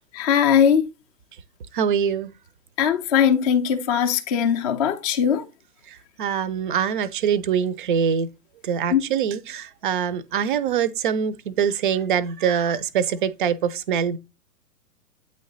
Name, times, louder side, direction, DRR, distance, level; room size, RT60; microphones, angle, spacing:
voice 1, 0.1-0.9 2.8-5.4 8.9-9.0, left 8 dB, 25° left, 0.4 m, -20 dB
voice 2, 1.7-2.3 5.9-8.3 8.6-14.2, right 7 dB, 35° right, 0.4 m, -24 dB
8.4 x 3.2 x 3.8 m
figure-of-eight pair, 115°, 46 cm